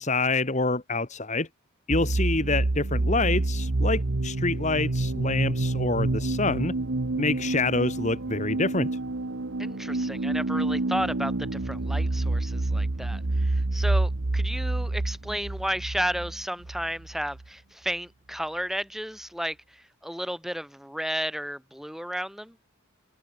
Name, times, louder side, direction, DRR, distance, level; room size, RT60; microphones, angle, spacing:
voice 1, 0.0-1.5 1.9-6.7 7.2-8.9, left 3 dB, 35° left, 1.7 m, -26 dB
sound 1, 1.9-17.4, right 2 dB, 65° right, 1.1 m, -28 dB
voice 2, 9.6-22.5, equal, ahead, 4.0 m, -33 dB
head